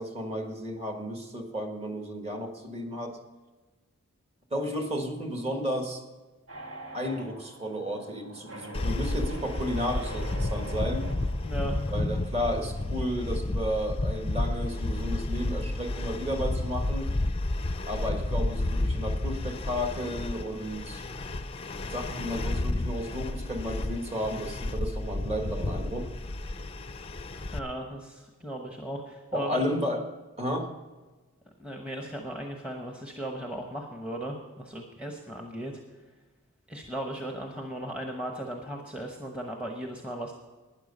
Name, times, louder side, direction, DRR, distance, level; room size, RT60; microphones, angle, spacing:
voice 1, 0.0-3.2 4.5-6.0 6.9-11.0 11.9-17.1 17.9-21.0 21.8-26.1 29.3-30.0 30.4-30.7, equal, 25° right, 4 dB, 1.4 m, -33 dB
sound 1, 6.5-12.0, right 2 dB, 55° right, 2.2 m, -44 dB
sound 2, 8.7-27.6, left 2 dB, 25° left, 0.5 m, -31 dB
voice 2, 11.4-11.8 27.5-29.6 31.6-35.8 36.7-40.3, right 1 dB, 5° right, 1 dB, 0.9 m, -36 dB
12.5 x 9.7 x 5.4 m, 1.3 s
head